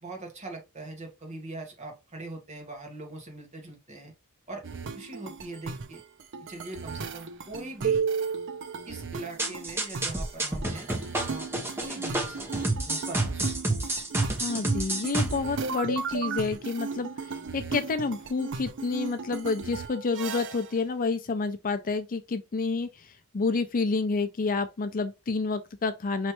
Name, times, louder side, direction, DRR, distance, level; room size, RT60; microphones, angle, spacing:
voice 1, 0.0-4.1 4.5-4.6 4.9-6.0 6.4-8.0 8.9-10.9 11.2-12.5 12.9-13.5 14.3-14.5, right 2 dB, 30° right, 1.4 m, -41 dB
sound 1, 4.6-20.8, right 5 dB, 55° right, 0.6 m, -35 dB
sound 2, 9.4-15.4, right 2 dB, 10° right, 0.9 m, -29 dB
voice 2, 14.4-17.1 17.5-22.9 23.3-26.3, left 4 dB, 40° left, 0.5 m, -29 dB
5.3 x 3.2 x 3.0 m
head